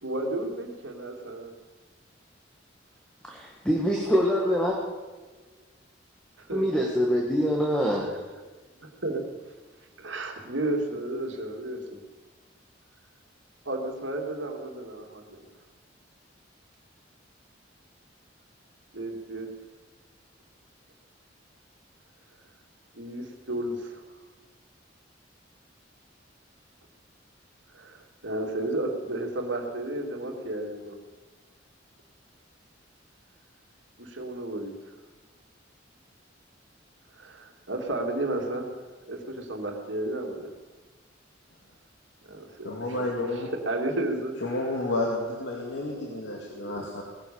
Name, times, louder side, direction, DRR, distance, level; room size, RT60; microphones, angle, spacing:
voice 1, 0.0-1.5 6.4-6.6 8.8-9.2 10.0-12.0 13.6-15.5 18.9-19.5 22.9-24.0 27.7-31.0 34.0-34.9 37.1-38.7 39.1-40.5 42.3-43.4 43.7-44.4 45.8-46.2 46.5-46.8, right 1 dB, 80° right, 3 dB, 2.5 m, -33 dB
voice 2, 3.2-4.8 6.5-8.2, equal, 5° left, -1 dB, 1.8 m, -25 dB
voice 3, 42.6-43.5 44.4-47.0, left 2 dB, 70° left, -1 dB, 2.2 m, -31 dB
19.5 x 10.5 x 7.1 m, 1.3 s
head